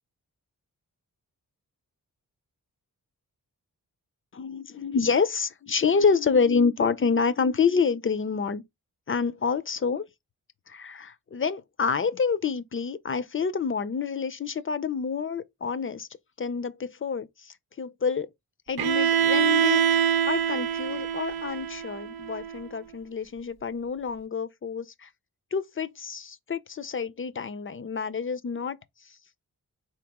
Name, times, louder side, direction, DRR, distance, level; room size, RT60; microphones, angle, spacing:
voice 1, 4.3-8.6 9.1-10.0 10.7-16.1 16.4-18.3 18.7-25.1 25.5-28.8, left 5 dB, 35° left, 0.5 m, -28 dB
Bowed string instrument, 18.8-22.7, right 8 dB, 85° right, 0.7 m, -25 dB
4.1 x 2.9 x 3.5 m
cardioid pair, 60°, 36 cm